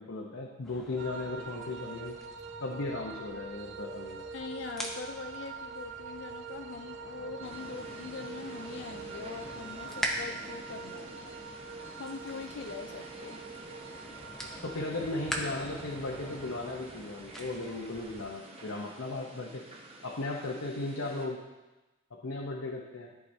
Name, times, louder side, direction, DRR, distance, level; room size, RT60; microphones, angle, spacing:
voice 1, 0.0-2.2 2.6-4.2 14.6-19.6 20.0-21.4 22.2-23.1, left 2 dB, 70° left, -1 dB, 0.8 m, -36 dB
sound 1, 0.6-18.3, equal, ahead, 0.7 m, -44 dB
sound 2, 1.0-16.8, right 5 dB, 55° right, 0.3 m, -45 dB
voice 2, 4.3-11.1 12.0-13.4, left 5 dB, 55° left, 6 dB, 0.3 m, -42 dB
sound 3, 7.4-21.3, right 1 dB, 25° right, 0.9 m, -49 dB
13.0 x 4.8 x 2.7 m, 1.1 s
head